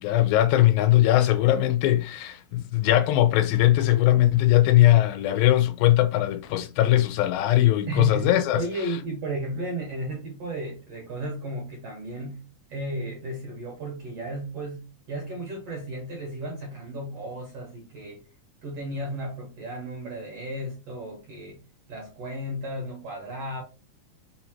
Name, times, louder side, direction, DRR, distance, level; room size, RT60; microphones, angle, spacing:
voice 1, 0.0-8.6, left 14 dB, 85° left, 2.3 m, -20 dB
voice 2, 7.9-18.2 18.6-21.6 21.9-23.6, right 1 dB, 60° right, 1.7 m, -34 dB
5.5 x 2.7 x 2.9 m
omnidirectional pair, 4.2 m